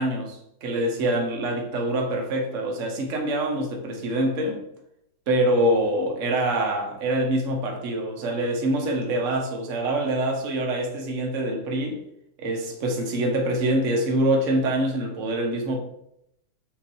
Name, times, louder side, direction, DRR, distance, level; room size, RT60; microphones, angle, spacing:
voice 1, 0.0-4.6 5.3-12.0 12.4-15.8, right 1 dB, 45° right, 1.3 m, -25 dB
5.9 x 3.9 x 4.6 m
omnidirectional pair, 2.3 m